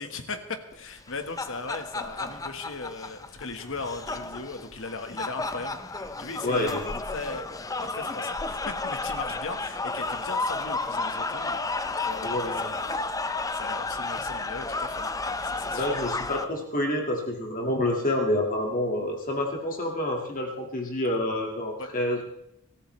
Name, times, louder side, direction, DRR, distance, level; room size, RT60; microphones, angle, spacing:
voice 1, 0.0-6.7 7.1-7.4 7.8-11.6 11.9-13.1 13.5-15.9 21.8-21.9, left 3 dB, 60° left, 7 dB, 1.5 m, -38 dB
sound 1, 1.0-16.4, left 3 dB, 15° left, 0.6 m, -32 dB
voice 2, 6.4-6.8 12.2-12.7 15.7-22.3, left 1 dB, 40° left, 1 dB, 2.0 m, -28 dB
25.0 x 14.0 x 3.3 m, 0.78 s
head